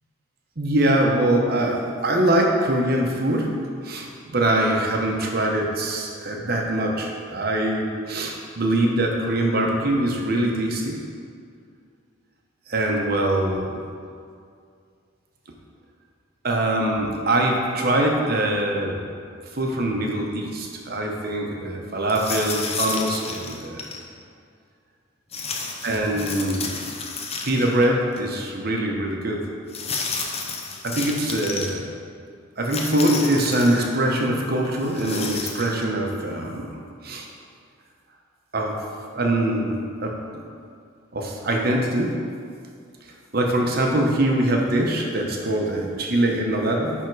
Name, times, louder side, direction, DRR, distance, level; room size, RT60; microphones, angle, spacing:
voice 1, 0.6-3.5 3.8-4.1 4.3-11.0 12.7-13.8 16.4-19.0 19.5-23.9 25.8-26.7 27.4-29.4 30.8-31.8 32.6-36.8 37.0-37.3 38.5-38.8 39.1-40.4 41.1-42.2 43.3-46.9, right 1 dB, 45° right, 0 dB, 0.9 m, -23 dB
sound 1, 22.1-24.0 25.3-27.9 28.2-28.3 29.7-31.7 32.6-33.9 34.8-35.8, left 4 dB, 30° left, 0.6 m, -31 dB
9.5 x 3.6 x 4.6 m, 2.3 s
head